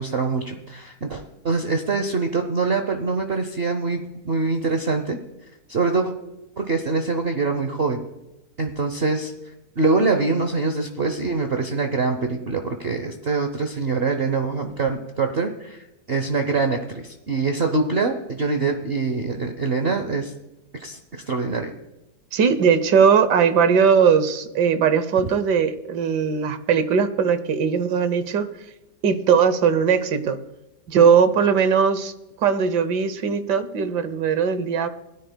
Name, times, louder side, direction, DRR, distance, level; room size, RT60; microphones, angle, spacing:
voice 1, 0.0-5.2 5.7-6.1 6.6-8.0 8.6-9.3 9.8-20.3 20.8-21.7, right 4 dB, 45° right, 5 dB, 0.9 m, -24 dB
voice 2, 22.3-28.5 29.0-30.4 30.9-32.1 32.4-34.9, right 6 dB, 80° right, 12 dB, 1.5 m, -19 dB
20.5 x 10.0 x 2.3 m, 0.96 s
omnidirectional pair, 1.8 m